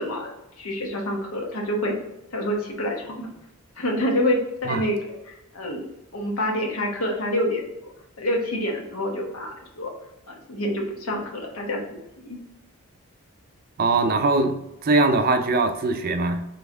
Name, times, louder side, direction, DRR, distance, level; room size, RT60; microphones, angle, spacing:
voice 1, 0.0-2.0 2.3-3.3 3.8-5.8 6.1-7.9 8.2-9.9 10.3-12.4, left 1 dB, 75° left, 1 dB, 1.1 m, -27 dB
voice 2, 13.8-16.5, right 3 dB, 45° right, 7 dB, 0.4 m, -21 dB
4.2 x 3.3 x 3.5 m, 0.90 s
head